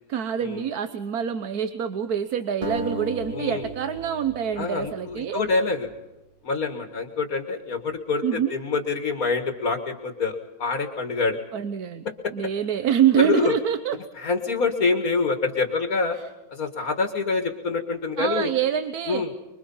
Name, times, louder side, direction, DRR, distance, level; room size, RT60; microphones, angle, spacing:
voice 1, 0.1-5.4 8.2-8.6 11.5-12.0 12.3-14.0 16.1-16.2 18.2-19.2, right 9 dB, 75° right, 10 dB, 1.5 m, -25 dB
sound 1, 2.6-5.8, right 1 dB, 35° right, 2.3 m, -35 dB
voice 2, 3.3-3.7 4.6-5.9 6.4-11.4 12.2-12.3 13.2-13.6 14.2-16.2 16.5-18.5 19.1-19.3, left 4 dB, 65° left, 5 dB, 2.4 m, -26 dB
25.5 x 23.5 x 5.6 m, 1.0 s
omnidirectional pair, 1.6 m